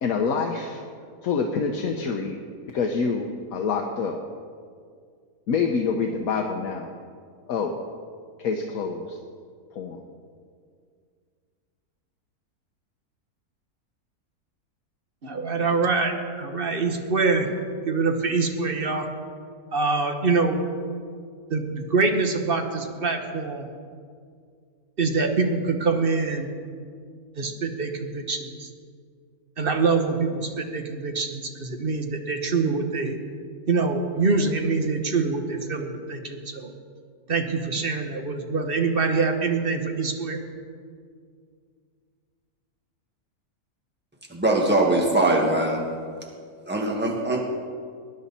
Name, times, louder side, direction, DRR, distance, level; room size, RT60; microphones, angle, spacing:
voice 1, 0.0-0.8 1.2-2.4 2.7-4.2 5.5-6.9 7.5-7.7 8.4-9.2 9.7-10.0, left 5 dB, 70° left, 3 dB, 1.2 m, -26 dB
voice 2, 15.2-17.5 17.9-19.0 19.7-20.6 21.5-23.7 25.0-26.5 27.4-28.7 29.6-33.2 33.7-36.7 37.3-40.4, right 4 dB, 40° right, 4 dB, 1.1 m, -25 dB
voice 3, 44.3-45.8 46.7-47.4, right 2 dB, 5° right, -1 dB, 1.6 m, -21 dB
19.5 x 10.5 x 4.2 m, 2.1 s
omnidirectional pair, 1.6 m